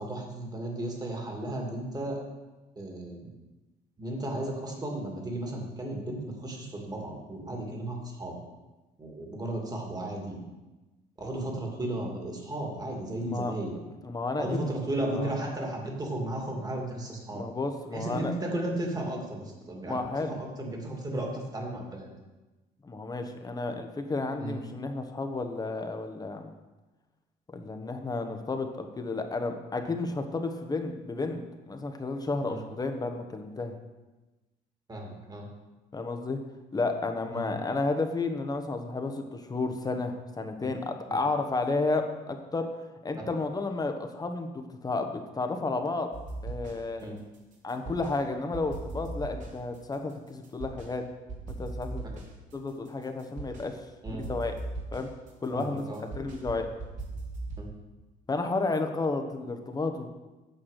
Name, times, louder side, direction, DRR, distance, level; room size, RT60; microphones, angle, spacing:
voice 1, 0.0-2.2 2.8-3.3 4.0-8.4 9.0-10.4 11.2-13.7 14.4-17.4 17.9-20.0 20.3-22.1 24.4-24.6 29.8-29.9 32.5-32.6 34.9-35.5 37.3-37.5 41.1-41.2 47.0-47.1 54.0-54.3 55.5-56.0 57.6-57.7, right 1 dB, 25° right, 0 dB, 2.5 m, -34 dB
voice 2, 13.2-13.5 14.0-14.7 15.1-15.3 17.3-18.3 19.8-20.3 22.8-26.5 27.5-31.4 31.7-33.8 35.9-36.4 36.7-42.7 43.0-46.1 46.4-47.1 47.6-51.0 51.5-52.0 52.5-54.6 54.9-55.1 55.4-55.9 56.1-56.7 58.3-60.1, left 3 dB, 20° left, 5 dB, 1.2 m, -32 dB
sound 1, 46.1-47.0 47.3-48.2 48.5-50.9 51.3-53.7 54.0-57.7, right 2 dB, 50° right, 2.6 m, -39 dB
9.0 x 7.1 x 6.6 m, 1.1 s
cardioid pair, 110°, 17 cm